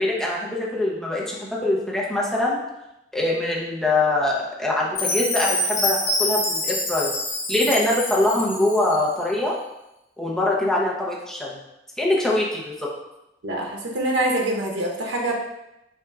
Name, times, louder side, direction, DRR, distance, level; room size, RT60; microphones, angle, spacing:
voice 1, 0.0-2.6 3.1-7.1 7.5-9.6 10.2-11.6 12.0-12.9, left 2 dB, 5° left, -5 dB, 0.7 m, -23 dB
Chime, 5.0-9.0, left 2 dB, 80° left, 1.0 m, -26 dB
voice 2, 13.4-15.3, right 1 dB, 90° right, 0 dB, 0.7 m, -25 dB
4.3 x 2.5 x 3.4 m, 0.90 s
head